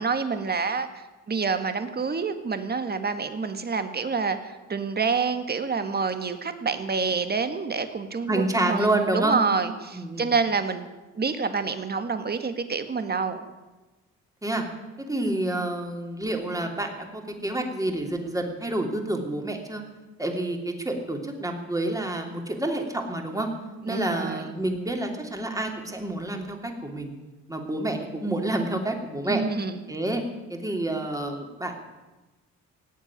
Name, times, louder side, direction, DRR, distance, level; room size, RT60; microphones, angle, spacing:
voice 1, 0.0-10.9 11.1-13.4 23.8-24.5 29.3-29.9, right 5 dB, 30° right, 9 dB, 1.7 m, -28 dB
voice 2, 8.3-9.4 9.9-10.3 14.4-14.6 15.0-19.8 20.2-23.5 23.8-27.1 27.5-29.4 29.9-30.2 30.5-31.8, right 1 dB, 10° right, 3 dB, 3.1 m, -28 dB
17.5 x 8.4 x 9.9 m, 1.1 s
cardioid pair, 90°, 30 cm